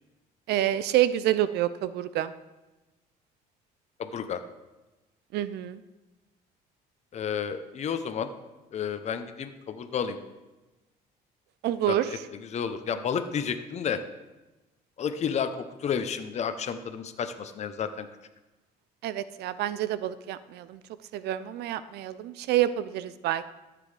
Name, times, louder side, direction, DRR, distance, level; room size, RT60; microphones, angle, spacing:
voice 1, 0.5-2.3 5.3-5.8 11.6-12.1 19.0-20.8 21.1-23.5, right 12 dB, 75° right, 14 dB, 0.5 m, -27 dB
voice 2, 4.0-4.4 7.1-8.3 8.7-10.2 11.9-14.0 15.0-18.1, left 7 dB, 40° left, 9 dB, 0.7 m, -31 dB
13.0 x 7.7 x 3.3 m, 1.1 s
cardioid pair, 110°, 17 cm